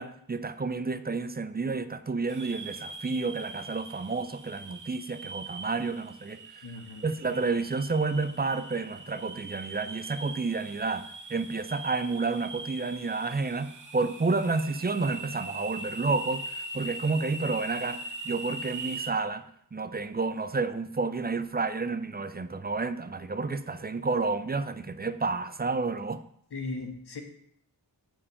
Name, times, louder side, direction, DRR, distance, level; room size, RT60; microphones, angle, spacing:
voice 1, 0.0-6.6 7.0-26.2, right 3 dB, 25° right, 12 dB, 0.5 m, -30 dB
sound 1, 2.3-19.1, right 2 dB, 50° right, 0.9 m, -41 dB
voice 2, 6.6-7.0 26.5-27.2, left 3 dB, 75° left, 4 dB, 1.4 m, -37 dB
8.6 x 4.6 x 5.6 m, 0.69 s
wide cardioid pair, 70°, 40 cm